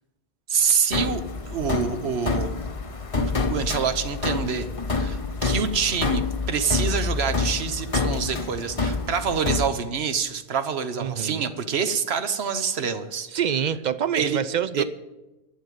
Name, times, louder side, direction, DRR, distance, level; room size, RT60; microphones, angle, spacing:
voice 1, 0.5-2.5 3.1-4.7 4.9-13.3 14.1-14.4 14.7-14.8, right 6 dB, 75° right, 10 dB, 1.1 m, -26 dB
sound 1, 0.9-9.7, left 4 dB, 35° left, 0.8 m, -27 dB
voice 2, 11.0-11.5 13.3-14.8, right 8 dB, 55° right, 14 dB, 0.5 m, -26 dB
11.5 x 6.6 x 9.2 m, 1.0 s
omnidirectional pair, 1.1 m